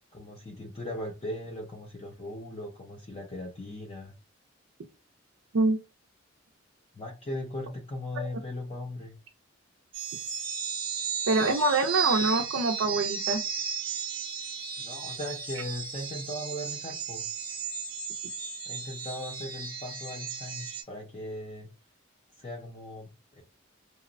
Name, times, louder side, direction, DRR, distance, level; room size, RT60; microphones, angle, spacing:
voice 1, 0.1-4.1 6.9-9.1 14.8-17.3 18.7-21.7 22.4-23.4, left 1 dB, 30° left, 0.5 m, -38 dB
sound 1, 9.9-20.8, right 6 dB, 25° right, 0.7 m, -35 dB
voice 2, 11.3-13.4, right 3 dB, 90° right, 0.5 m, -25 dB
2.9 x 2.0 x 2.5 m
head